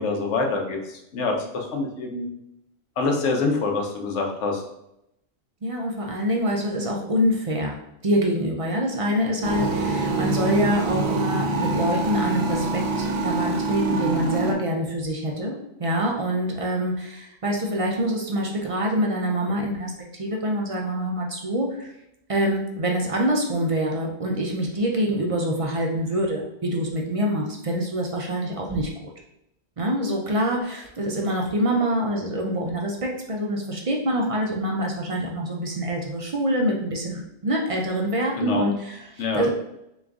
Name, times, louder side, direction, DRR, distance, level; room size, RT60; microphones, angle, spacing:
voice 1, 0.0-2.3 3.0-4.6 38.4-38.7 39.2-39.5, left 3 dB, 65° left, 2 dB, 1.0 m, -25 dB
voice 2, 5.6-7.7 8.0-21.9 22.3-29.1 29.8-39.5, equal, 50° right, 0 dB, 0.4 m, -25 dB
sound 1, 9.4-14.5, right 3 dB, 85° right, 1.0 m, -25 dB
3.6 x 3.0 x 3.5 m, 0.81 s
omnidirectional pair, 1.4 m